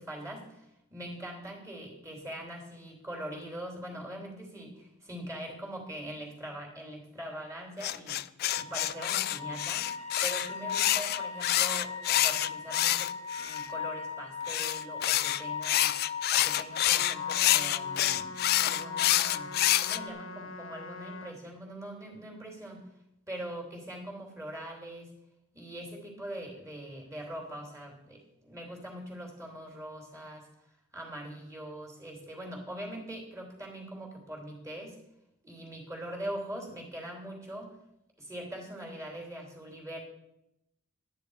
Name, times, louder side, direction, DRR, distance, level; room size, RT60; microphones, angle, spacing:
voice 1, 0.0-8.2 8.5-16.0 16.3-22.9 23.3-25.1 25.5-35.0 35.4-37.8 38.2-40.0, right 1 dB, 15° right, 0 dB, 3.1 m, -42 dB
sound 1, 7.8-13.6 14.5-20.0, left 14 dB, 45° left, 0.3 m, -27 dB
sound 2, 8.5-20.1, left 5 dB, 30° left, 0.8 m, -39 dB
Trumpet, 16.9-21.4, left 3 dB, 65° left, 1.2 m, -44 dB
11.0 x 10.5 x 4.8 m, 0.85 s
head